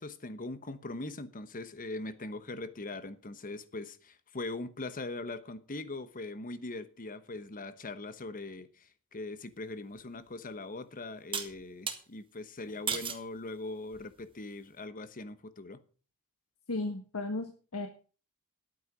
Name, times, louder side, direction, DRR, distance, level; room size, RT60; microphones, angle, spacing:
voice 1, 0.0-15.8, left 2 dB, 40° left, 1.1 m, -41 dB
sound 1, 10.0-10.1 11.3-12.0 12.9-13.3 13.9-14.3, right 6 dB, 25° right, 1.6 m, -35 dB
voice 2, 16.7-17.9, left 2 dB, 85° left, 1.4 m, -35 dB
11.0 x 9.1 x 6.1 m
head